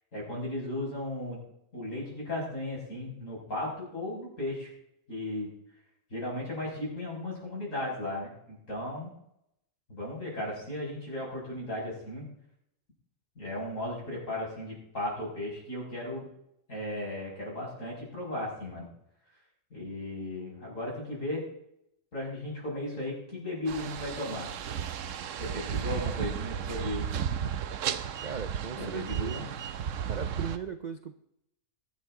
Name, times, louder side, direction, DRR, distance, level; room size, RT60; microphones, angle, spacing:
voice 1, 0.1-1.4 1.7-4.7 5.1-5.5 6.1-9.1 9.9-12.2 13.3-16.3 16.7-18.9 19.7-21.4 22.1-24.5 25.4-27.1 28.8-29.4, left 1 dB, 60° left, -5 dB, 6.6 m, -36 dB
sound 1, 23.7-30.6, right 8 dB, 65° right, 1.0 m, -34 dB
voice 2, 28.2-29.5 30.1-31.2, right 6 dB, 45° right, 9 dB, 0.6 m, -38 dB
23.0 x 9.4 x 3.8 m, 0.78 s
omnidirectional pair, 1.5 m